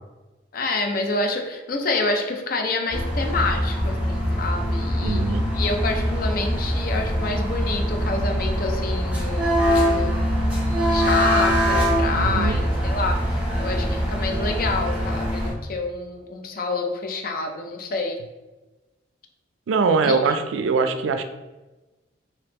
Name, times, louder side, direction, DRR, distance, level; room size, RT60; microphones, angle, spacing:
voice 1, 0.5-5.2 5.5-10.3 10.9-18.2 20.0-20.2, left 3 dB, 50° left, 4 dB, 0.4 m, -27 dB
sound 1, 2.9-15.5, equal, 10° right, 0.7 m, -23 dB
voice 2, 5.0-5.4 12.1-12.6 19.7-21.2, right 4 dB, 80° right, 8 dB, 0.3 m, -22 dB
3.4 x 2.8 x 2.9 m, 1.1 s
head